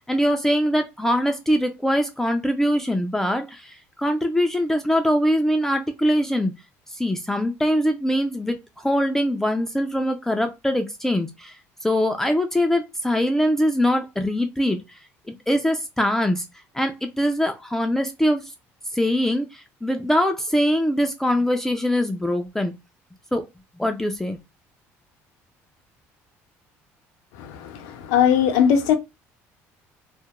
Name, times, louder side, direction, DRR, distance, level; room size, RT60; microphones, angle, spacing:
voice 1, 0.1-6.5 6.9-11.5 11.8-14.8 15.3-16.4 16.7-18.4 18.9-22.7 23.3-23.5 23.8-24.4, equal, 5° left, 0.3 m, -22 dB
voice 2, 27.4-29.0, left 8 dB, 90° left, 0.6 m, -20 dB
2.3 x 2.1 x 2.9 m
cardioid pair, 110°, 6 cm